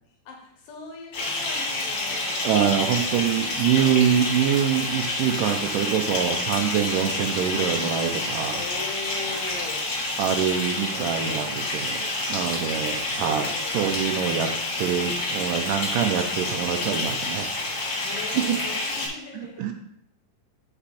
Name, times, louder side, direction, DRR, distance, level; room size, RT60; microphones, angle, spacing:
voice 1, 0.3-2.4 3.3-4.1 8.5-9.9 13.3-13.7 18.0-19.7, left 4 dB, 75° left, 0 dB, 3.0 m, -40 dB
Bathtub (filling or washing) / Fill (with liquid), 1.1-19.1, left 2 dB, 55° left, 2.9 m, -28 dB
voice 2, 2.4-8.6 10.2-14.5 14.8-17.9 18.3-18.6 19.3-19.7, right 9 dB, 80° right, 5 dB, 2.1 m, -25 dB
6.2 x 5.1 x 4.9 m, 0.74 s
omnidirectional pair, 4.0 m